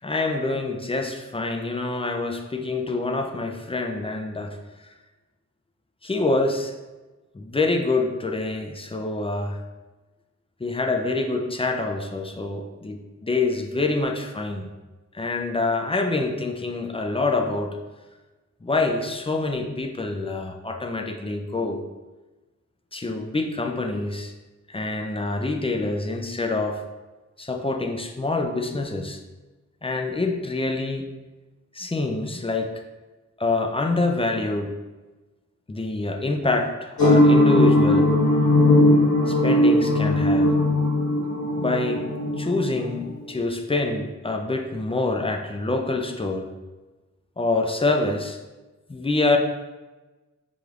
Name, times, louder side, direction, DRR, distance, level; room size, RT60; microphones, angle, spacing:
voice 1, 0.0-4.9 6.0-6.8 7.3-9.6 10.6-14.7 15.1-17.8 18.6-21.8 22.9-24.3 24.7-26.8 27.4-29.2 29.8-31.1 31.7-32.8 33.4-34.8 35.7-38.1 39.3-40.6 41.6-42.1 42.4-46.5 47.4-48.4 48.9-49.4, left 3 dB, 20° left, 4 dB, 0.4 m, -26 dB
sound 1, 37.0-43.2, left 1 dB, 65° left, 1.3 m, -19 dB
5.3 x 3.3 x 2.3 m, 1.2 s
wide cardioid pair, 70°, 30 cm